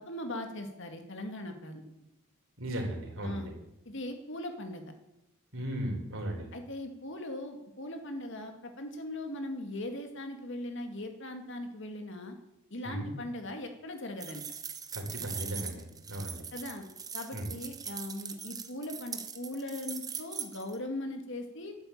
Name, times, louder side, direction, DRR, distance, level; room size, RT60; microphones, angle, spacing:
voice 1, 0.0-2.1 3.2-3.5 3.9-4.9 6.5-12.3 12.7-14.4 16.5-16.8 17.1-21.8, left 1 dB, 55° left, 5 dB, 2.2 m, -39 dB
voice 2, 2.6-3.5 5.5-6.5 12.8-13.1 14.9-16.4 17.3-17.5, right 1 dB, 65° right, 1 dB, 4.4 m, -36 dB
sound 1, 14.2-20.8, right 6 dB, 15° right, 1.0 m, -41 dB
12.5 x 9.7 x 8.8 m, 0.88 s
head